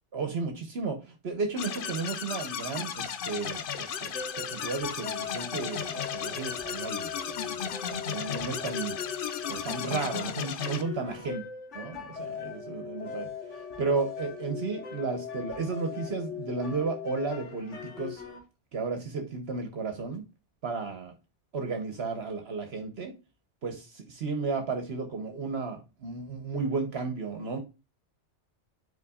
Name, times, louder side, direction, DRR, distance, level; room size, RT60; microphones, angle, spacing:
voice 1, 0.1-9.0 9.5-11.4 11.7-18.2 18.7-20.3 20.6-21.1 21.5-23.1 23.6-27.6, right 4 dB, 65° right, 1.2 m, -33 dB
sound 1, 1.6-10.8, left 7 dB, 55° left, 0.7 m, -35 dB
sound 2, 4.1-18.4, left 7 dB, 90° left, 1.7 m, -40 dB
9.6 x 4.5 x 2.3 m
omnidirectional pair, 1.2 m